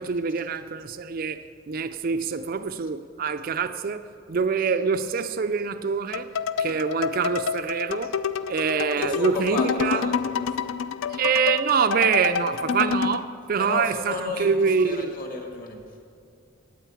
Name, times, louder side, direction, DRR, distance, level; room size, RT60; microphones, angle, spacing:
voice 1, 0.0-1.4 1.7-6.3 6.6-8.1 8.5-10.0 11.1-15.1, right 6 dB, 45° right, 0.3 m, -25 dB
sound 1, 6.1-13.2, left 6 dB, 70° left, 0.4 m, -28 dB
voice 2, 9.0-10.8 12.3-12.9 13.6-16.0, left 3 dB, 40° left, 1.6 m, -34 dB
9.0 x 8.8 x 8.5 m
head